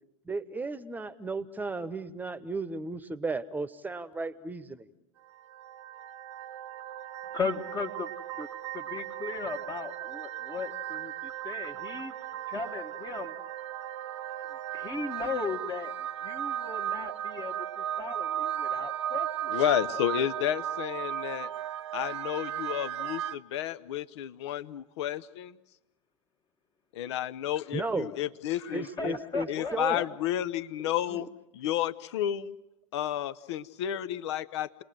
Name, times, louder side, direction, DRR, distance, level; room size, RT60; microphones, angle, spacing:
voice 1, 0.2-4.9 27.7-28.1 28.7-30.0 30.8-31.3, right 3 dB, 10° right, 15 dB, 1.2 m, -35 dB
sound 1, 5.2-23.4, right 11 dB, 65° right, 0.8 m, -36 dB
voice 2, 7.3-8.1 8.4-8.5 8.7-12.1 12.5-13.3 14.4-14.5 14.7-15.9 16.2-17.5 18.0-19.6 28.6-30.1, left 4 dB, 25° left, 3 dB, 1.6 m, -36 dB
voice 3, 19.5-21.5 21.9-25.6 26.9-29.1 29.5-31.3 31.5-32.6 32.9-34.8, left 11 dB, 60° left, 15 dB, 1.0 m, -31 dB
29.5 x 20.5 x 7.7 m, 0.88 s
figure-of-eight pair, 85°, 16 cm